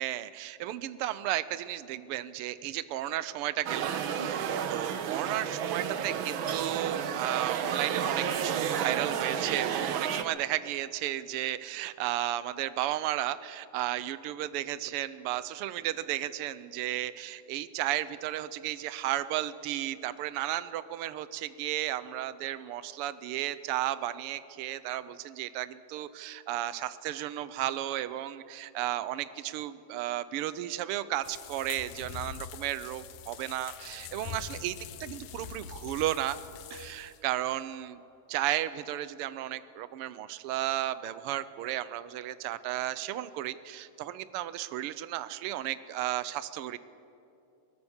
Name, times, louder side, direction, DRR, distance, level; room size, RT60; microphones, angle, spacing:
voice 1, 0.0-34.7 35.0-36.4 36.7-38.0 38.3-46.8, right 13 dB, 80° right, 14 dB, 1.2 m, -34 dB
sound 1, 3.7-10.2, right 8 dB, 65° right, 1.3 m, -31 dB
sound 2, 31.2-37.2, left 10 dB, 80° left, 2.1 m, -44 dB
24.0 x 19.5 x 7.2 m, 2.7 s
omnidirectional pair, 3.3 m